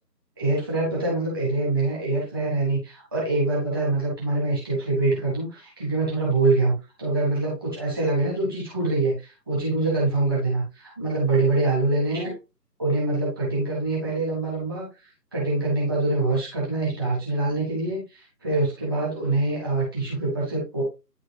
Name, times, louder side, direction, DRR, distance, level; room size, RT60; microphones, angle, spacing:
voice 1, 0.4-6.7 7.0-12.3 12.8-14.9 15.3-20.8, right 2 dB, 15° right, -5 dB, 1.9 m, -24 dB
9.4 x 5.1 x 2.7 m, 0.26 s
figure-of-eight pair, 165°, 50 cm